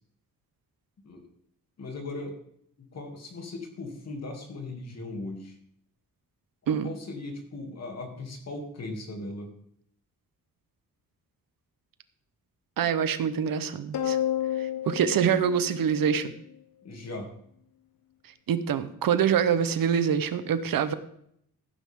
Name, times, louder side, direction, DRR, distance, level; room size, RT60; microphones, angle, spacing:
voice 1, 1.8-2.4 2.8-5.6 6.6-9.5 16.8-17.3, left 2 dB, 50° left, 2 dB, 2.8 m, -38 dB
voice 2, 12.8-14.2 14.6-16.3 18.5-20.9, right 8 dB, 80° right, 12 dB, 1.0 m, -25 dB
sound 1, 13.9-16.5, left 11 dB, 80° left, 1.0 m, -31 dB
16.0 x 9.5 x 3.7 m, 0.70 s
wide cardioid pair, 160°, 34 cm